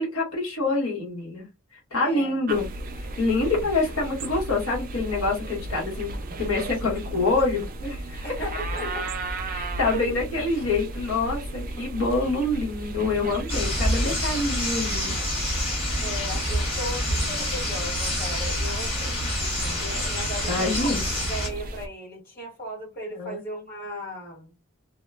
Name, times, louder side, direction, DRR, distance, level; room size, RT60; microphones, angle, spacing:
voice 1, 0.0-1.4 1.9-2.7 3.0-6.1 6.4-8.2 8.8-8.9 9.5-15.1 20.5-21.0 23.1-23.4, left 3 dB, 75° left, 1.3 m, -26 dB
voice 2, 2.0-2.4 8.2-9.1 9.9-10.2 16.0-20.9 21.3-24.5, equal, 45° left, 1.6 m, -36 dB
sound 1, 2.5-21.9, right 2 dB, 40° right, 0.4 m, -34 dB
sound 2, 13.5-21.5, equal, 25° left, 1.2 m, -27 dB
2.8 x 2.1 x 2.3 m
head